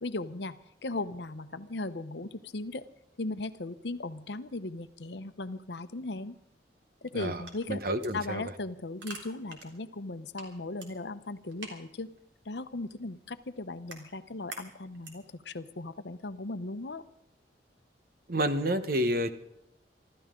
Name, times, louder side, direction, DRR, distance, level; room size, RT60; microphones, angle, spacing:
voice 1, 0.0-2.9 3.2-6.4 7.0-7.8 8.1-12.1 12.4-17.0, left 2 dB, 75° left, 12 dB, 0.9 m, -37 dB
sound 1, 7.4-15.4, right 3 dB, 90° right, 3.6 m, -50 dB
voice 2, 7.7-8.4 18.3-19.4, equal, 55° right, 10 dB, 1.1 m, -29 dB
25.5 x 13.5 x 3.8 m, 0.81 s
head